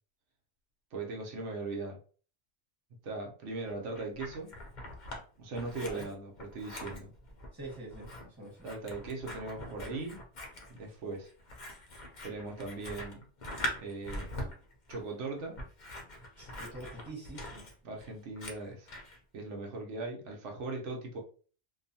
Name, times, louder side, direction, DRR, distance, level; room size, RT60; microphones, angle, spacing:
voice 1, 0.9-2.0 3.0-4.5 5.4-7.1 8.6-10.2 10.7-11.3 12.2-13.2 13.8-14.3 14.9-15.6 17.8-18.9 19.3-21.2, right 3 dB, 90° right, 0 dB, 1.0 m, -39 dB
Scissors, 3.7-5.2 5.5-19.2, left 1 dB, 50° left, 0.7 m, -43 dB
voice 2, 7.5-8.7 16.4-17.7, right 2 dB, 20° right, -3 dB, 1.3 m, -45 dB
2.6 x 2.3 x 2.6 m, 0.40 s
omnidirectional pair, 1.2 m